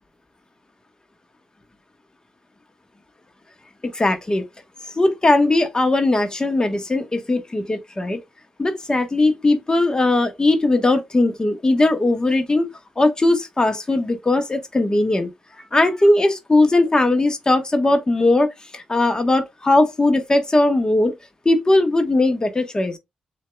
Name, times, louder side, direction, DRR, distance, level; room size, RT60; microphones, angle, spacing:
voice 1, 3.9-4.4 5.0-8.2 8.6-12.7 13.0-15.3 15.7-21.1 21.4-23.0, left 2 dB, 25° left, 1.2 m, -19 dB
7.4 x 2.8 x 2.3 m
cardioid pair, 60°, 3 cm